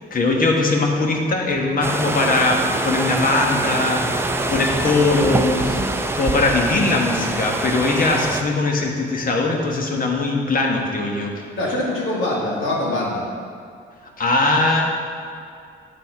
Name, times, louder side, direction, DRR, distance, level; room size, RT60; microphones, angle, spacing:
voice 1, 0.1-5.8 6.2-11.3 14.2-14.8, left 2 dB, 45° left, 1 dB, 1.3 m, -20 dB
sound 1, 1.8-8.4, right 2 dB, 10° right, 0.5 m, -24 dB
voice 2, 11.6-13.2, left 1 dB, 80° left, -4 dB, 2.0 m, -23 dB
8.4 x 4.1 x 5.9 m, 2.3 s
cardioid pair, 90°, 20 cm